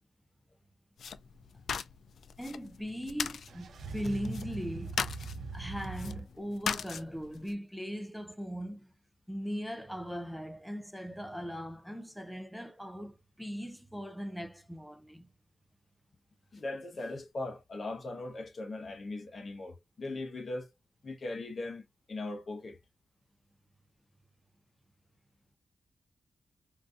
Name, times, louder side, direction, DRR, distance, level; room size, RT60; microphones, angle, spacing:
sound 1, 1.0-7.5, left 7 dB, 75° left, 0.3 m, -40 dB
voice 1, 2.4-5.0 5.5-8.9 9.3-15.3, equal, ahead, 0.4 m, -39 dB
sound 2, 3.5-6.2, right 4 dB, 75° right, 0.5 m, -41 dB
voice 2, 16.5-20.7 21.0-21.8 22.1-22.8, left 2 dB, 45° left, 0.7 m, -39 dB
3.8 x 2.5 x 2.3 m
wide cardioid pair, 100°, 0 cm